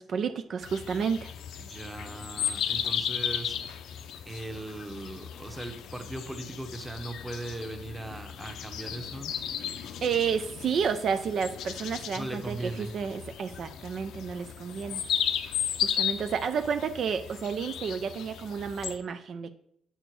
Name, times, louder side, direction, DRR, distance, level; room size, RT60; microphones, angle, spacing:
voice 1, 0.0-1.3 10.0-15.0 15.8-19.5, right 6 dB, 60° right, 9 dB, 0.5 m, -31 dB
sound 1, 0.6-19.0, left 9 dB, 80° left, 0.6 m, -35 dB
voice 2, 1.6-3.6 4.3-9.4 12.1-12.9, right 2 dB, 10° right, 7 dB, 1.0 m, -39 dB
7.8 x 4.4 x 4.6 m, 0.71 s
cardioid pair, 90°, 0 cm